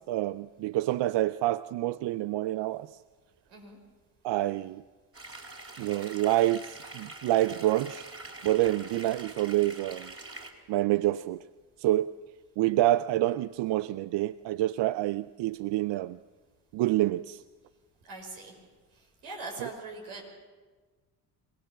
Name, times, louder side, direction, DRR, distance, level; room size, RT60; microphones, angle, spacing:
voice 1, 0.1-3.0 4.2-4.8 5.8-8.1 8.4-10.1 10.7-11.4 11.8-12.1 12.6-16.2 16.7-17.4 19.6-19.7, right 15 dB, 65° right, 0.6 m, -27 dB
sound 1, 5.1-10.5, right 2 dB, 30° right, 4.2 m, -45 dB
voice 2, 18.0-18.6 19.0-20.2, right 3 dB, 80° right, 5.7 m, -42 dB
26.0 x 18.0 x 7.3 m
supercardioid pair, 60°, 47 cm